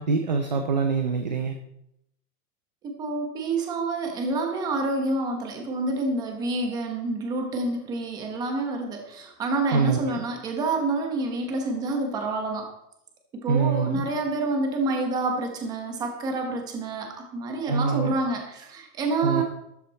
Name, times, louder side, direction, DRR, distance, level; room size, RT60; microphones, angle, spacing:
voice 1, 0.0-1.6 9.7-10.1 13.5-14.1 17.7-18.1 19.2-19.4, right 5 dB, 30° right, 6 dB, 0.5 m, -24 dB
voice 2, 2.8-12.7 13.3-19.4, right 2 dB, 10° right, 2 dB, 1.0 m, -28 dB
13.0 x 12.5 x 4.1 m, 0.81 s
supercardioid pair, 180°, 48 cm